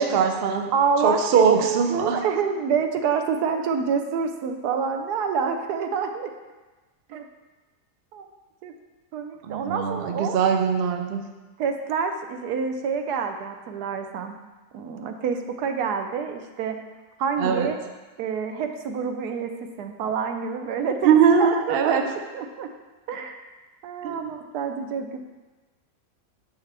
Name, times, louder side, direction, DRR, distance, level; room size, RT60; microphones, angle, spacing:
voice 1, 0.0-0.7 1.0-2.2 9.4-11.2 17.4-17.7 21.0-22.0 24.0-24.3, right 6 dB, 70° right, 5 dB, 0.5 m, -21 dB
voice 2, 0.7-6.3 7.1-7.2 8.1-8.3 8.6-8.7 9.1-10.4 11.6-14.4 14.7-16.8 17.2-17.8 18.2-22.0 22.3-22.7 23.1-23.4 23.8-25.2, right 6 dB, 90° right, 6 dB, 1.2 m, -27 dB
6.0 x 5.7 x 3.3 m, 1.2 s
omnidirectional pair, 1.7 m